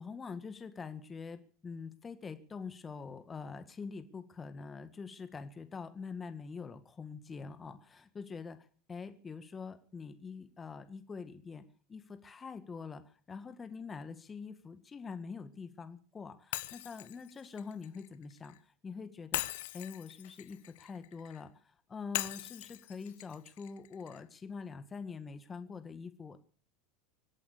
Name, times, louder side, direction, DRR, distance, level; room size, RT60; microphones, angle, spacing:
voice 1, 0.0-11.6 11.9-19.4 19.7-26.4, left 5 dB, 25° left, 10 dB, 1.9 m, -45 dB
Shatter, 16.5-18.6 19.3-21.4 22.1-24.2, left 17 dB, 70° left, 0.8 m, -41 dB
25.0 x 8.5 x 6.8 m, 0.43 s
hypercardioid pair, 90°, 0 cm